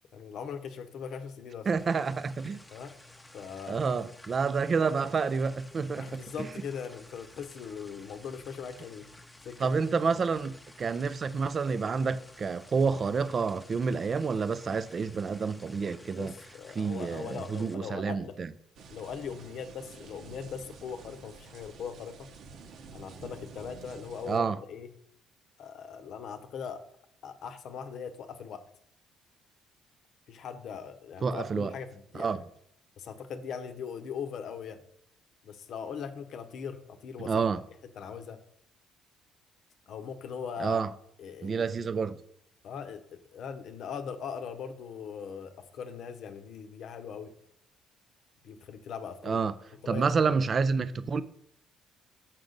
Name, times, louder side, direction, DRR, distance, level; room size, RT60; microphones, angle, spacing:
voice 1, 0.1-1.7 2.7-2.9 3.3-3.8 6.0-9.1 9.4-9.8 16.2-18.3 18.9-22.2 22.9-24.9 25.6-26.8 27.2-28.6 30.3-32.4 33.0-34.8 35.4-37.4 38.0-38.4 39.9-40.8 41.2-41.6 42.6-47.3 48.4-49.5 49.8-50.1 50.4-50.5, left 7 dB, 60° left, 0.8 m, -40 dB
voice 2, 1.7-2.6 3.7-6.5 9.6-16.4 16.7-18.5 24.2-24.6 31.2-31.7 32.1-32.4 37.2-37.6 40.6-40.9 41.4-42.2 49.2-49.5 49.9-51.2, right 5 dB, 35° right, 0.4 m, -29 dB
sound 1, 1.8-17.7, left 1 dB, 5° left, 0.7 m, -53 dB
sound 2, 18.8-24.4, right 5 dB, 60° right, 0.8 m, -49 dB
6.5 x 6.0 x 3.9 m
cardioid pair, 115°, 0 cm